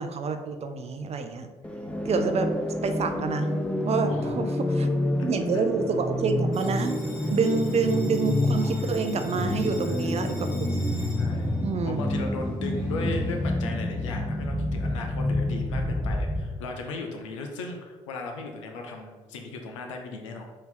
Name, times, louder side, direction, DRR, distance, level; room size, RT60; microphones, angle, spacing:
voice 1, 0.0-1.5 2.0-2.5 2.8-3.5 3.8-4.9 5.2-7.0 7.3-11.0 11.6-12.0, right 4 dB, 45° right, 7 dB, 0.5 m, -28 dB
sound 1, 1.6-16.6, left 1 dB, 5° left, 0.5 m, -28 dB
voice 2, 4.1-4.4 5.5-5.6 9.8-10.1 11.2-11.5 11.8-20.4, left 3 dB, 90° left, 3 dB, 0.5 m, -37 dB
Bell, 6.5-13.5, left 2 dB, 55° left, 1.3 m, -46 dB
4.2 x 2.7 x 3.8 m, 1.3 s
hypercardioid pair, 50°, 15 cm